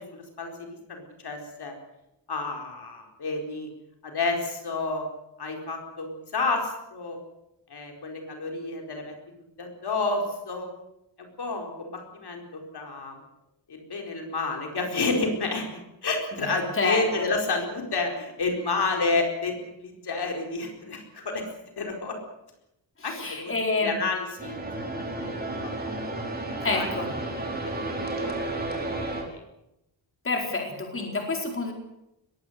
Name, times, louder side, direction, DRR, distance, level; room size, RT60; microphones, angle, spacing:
voice 1, 0.1-1.7 2.3-3.7 4.0-5.0 5.4-7.2 7.7-9.1 9.6-10.7 11.2-13.2 13.7-21.4 21.8-22.2 23.0-23.5 23.8-24.9 25.2-25.3 25.6-26.1 26.4-26.9 27.6-27.7 28.2-28.3 28.7-28.8 29.3-29.4, left 3 dB, 55° left, 2 dB, 4.5 m, -30 dB
voice 2, 16.5-17.3 23.1-23.9 26.6-27.1 30.2-31.7, left 3 dB, 25° left, 2 dB, 4.5 m, -28 dB
sound 1, 24.4-29.2, right 2 dB, 20° right, 4.4 m, -32 dB
21.5 x 17.5 x 8.1 m, 0.86 s
wide cardioid pair, 155°, 46 cm